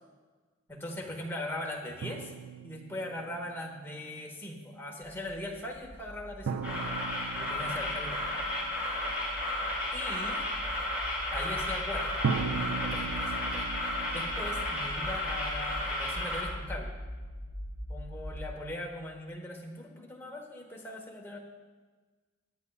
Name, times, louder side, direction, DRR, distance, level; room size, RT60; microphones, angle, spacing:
voice 1, 0.7-2.3 2.6-6.6 7.3-8.2 9.9-10.4 11.3-12.1 12.8-13.7 14.1-16.9 17.9-21.4, left 1 dB, 10° left, -1 dB, 1.2 m, -40 dB
sound 1, 2.0-3.8 6.5-9.3 12.2-16.1, right 5 dB, 80° right, 0.5 m, -38 dB
sound 2, 5.0-18.5, equal, 40° left, 2.9 m, -43 dB
sound 3, 6.6-16.4, left 1 dB, 10° right, 3.6 m, -33 dB
17.5 x 9.8 x 2.4 m, 1.4 s
head